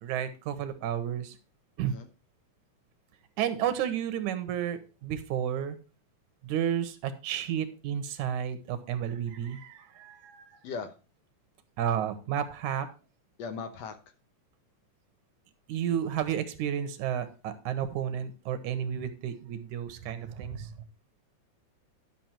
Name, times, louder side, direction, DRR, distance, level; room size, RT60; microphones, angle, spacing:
voice 1, 0.0-1.4 1.8-1.9 3.4-5.8 6.4-10.6 11.8-12.9 15.7-20.7, right 9 dB, 85° right, 11 dB, 2.4 m, -32 dB
voice 2, 13.4-14.0, left 5 dB, 70° left, 8 dB, 2.0 m, -37 dB
11.0 x 6.0 x 4.4 m, 0.33 s
omnidirectional pair, 3.4 m